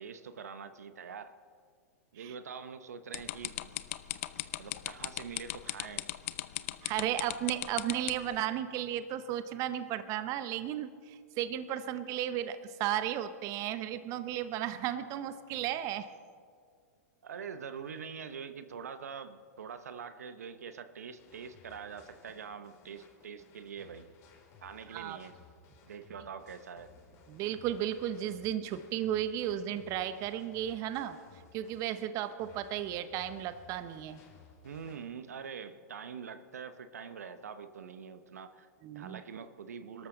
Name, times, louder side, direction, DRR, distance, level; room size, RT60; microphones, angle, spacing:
voice 1, 0.0-1.4 2.1-3.7 4.6-6.1 17.2-24.1 24.6-25.4 25.8-26.9 34.6-38.7 38.9-40.1, right 6 dB, 75° right, 12 dB, 0.9 m, -44 dB
sound 1, 3.1-8.3, left 15 dB, 55° left, 0.7 m, -36 dB
voice 2, 6.8-16.1 24.9-25.2 27.3-31.2 31.5-34.2 38.8-39.2, right 11 dB, 40° right, 12 dB, 0.8 m, -34 dB
sound 2, 21.2-35.0, left 5 dB, 35° left, 4.2 m, -59 dB
24.0 x 13.5 x 3.9 m, 2.1 s
hypercardioid pair, 105°, 8 cm